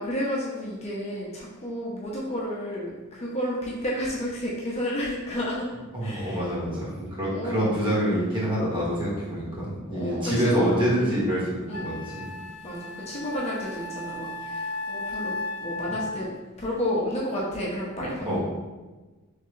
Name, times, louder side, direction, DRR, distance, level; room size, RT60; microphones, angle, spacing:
voice 1, 0.0-5.7 6.0-6.5 7.3-7.9 9.9-10.7 11.0-11.2 11.6-11.9 12.3-16.3 16.6-18.4, equal, 30° left, -5 dB, 0.6 m, -31 dB
voice 2, 5.9-12.3 18.2-18.4, equal, 20° right, -8 dB, 1.3 m, -26 dB
Wind instrument woodwind instrument, 11.1-11.2 11.7-16.4, left 2 dB, 75° left, 0.4 m, -35 dB
3.5 x 3.2 x 3.1 m, 1.2 s
head